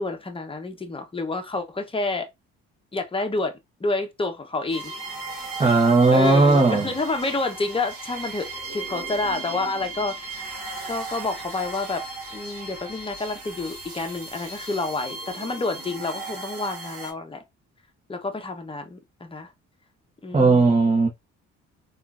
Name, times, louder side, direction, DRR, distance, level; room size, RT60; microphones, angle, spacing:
voice 1, 0.0-2.3 2.9-4.9 6.1-10.5 10.8-12.0 12.3-17.4 18.1-19.5 20.2-20.7, left 3 dB, 20° left, 0.8 m, -29 dB
sound 1, 4.7-17.1, right 3 dB, 50° right, 1.6 m, -37 dB
voice 2, 5.6-6.9 20.3-21.1, right 3 dB, 20° right, 0.8 m, -17 dB
3.6 x 2.5 x 2.4 m
cardioid pair, 90°, 30 cm